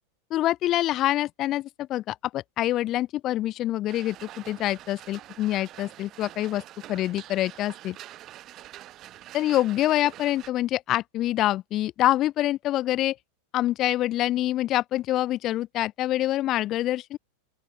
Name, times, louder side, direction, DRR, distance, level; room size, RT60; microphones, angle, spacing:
voice 1, 0.3-6.6 6.9-8.0 9.3-13.2 13.5-17.2, left 14 dB, 35° left, 0.4 m, -26 dB
sound 1, 3.9-10.5, right 14 dB, 35° right, 1.0 m, -46 dB
open air
figure-of-eight pair, 90°, 0 cm